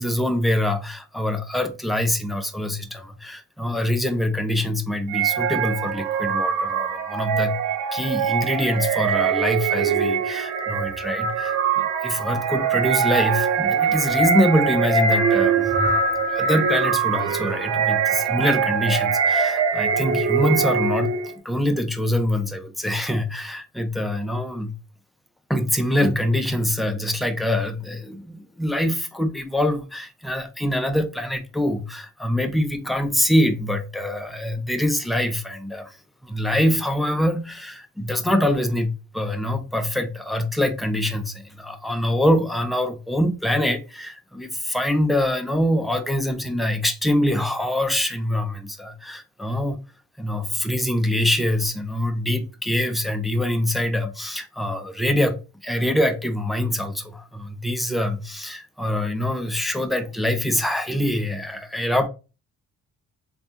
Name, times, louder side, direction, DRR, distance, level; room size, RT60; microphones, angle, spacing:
voice 1, 0.0-7.6 7.9-15.7 16.3-24.7 25.5-36.0 36.2-49.8 50.2-62.1, left 1 dB, ahead, 0.6 m, -24 dB
sound 1, 5.1-21.3, right 6 dB, 90° right, 0.8 m, -22 dB
3.3 x 2.5 x 2.8 m
cardioid pair, 90°, 30 cm